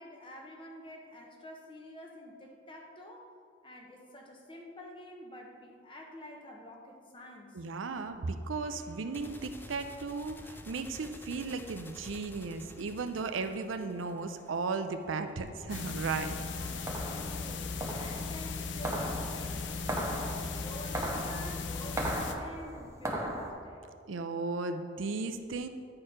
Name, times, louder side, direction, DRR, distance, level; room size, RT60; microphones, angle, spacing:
voice 1, 0.0-3.3 3.6-7.6 16.5-19.8 20.1-23.8, left 1 dB, 25° left, 1 dB, 1.0 m, -48 dB
voice 2, 7.5-16.4 24.1-25.7, right 4 dB, 90° right, 8 dB, 0.5 m, -35 dB
sound 1, 8.6-17.8, left 1 dB, 10° left, 0.4 m, -52 dB
sound 2, 15.7-22.3, left 4 dB, 70° left, 0.5 m, -37 dB
sound 3, 16.6-23.5, right 1 dB, 15° right, 0.8 m, -38 dB
9.8 x 4.4 x 5.0 m, 2.2 s
head